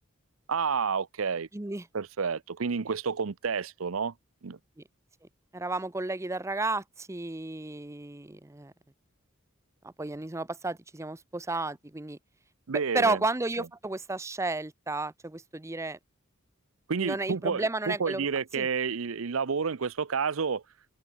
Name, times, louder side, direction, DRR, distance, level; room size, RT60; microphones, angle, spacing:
voice 1, 0.5-1.5 1.9-4.1 4.4-4.6 12.7-13.2 16.9-20.6, right 5 dB, 75° right, 0.7 m, -30 dB
voice 2, 1.5-1.9 5.5-8.7 9.8-12.2 12.9-16.0 17.0-18.3 18.6-18.7, right 2 dB, 15° right, 0.7 m, -32 dB
head